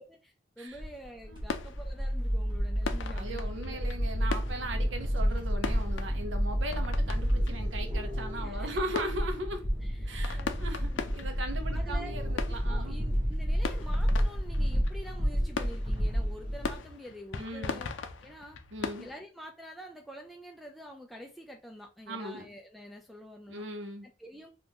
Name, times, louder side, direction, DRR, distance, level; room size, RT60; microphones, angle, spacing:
voice 1, 0.0-3.9 8.4-8.7 9.8-11.2 11.7-12.1 12.5-17.9 18.2-18.6 19.0-23.6 24.0-24.5, equal, ahead, 0.3 m, -47 dB
sound 1, 0.7-19.2, left 5 dB, 75° left, 0.4 m, -41 dB
sound 2, 0.8-16.8, equal, 25° right, 0.9 m, -30 dB
voice 2, 3.1-9.6 10.1-13.0 17.3-17.8 18.7-19.1 22.1-22.5 23.5-24.1, right 1 dB, 75° right, 0.8 m, -38 dB
3.6 x 2.5 x 2.9 m
head